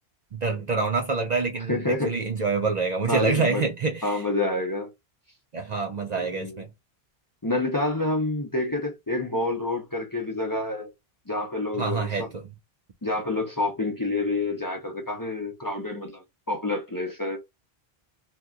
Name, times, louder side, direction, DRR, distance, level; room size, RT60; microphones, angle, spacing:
voice 1, 0.3-4.2 5.5-6.7 11.8-12.5, right 4 dB, 50° right, 0.6 m, -26 dB
voice 2, 1.7-2.2 3.1-3.6 4.0-4.9 6.1-6.6 7.4-10.9 11.3-12.3 13.0-17.4, left 2 dB, 25° left, 0.6 m, -28 dB
2.8 x 2.3 x 3.6 m
omnidirectional pair, 1.0 m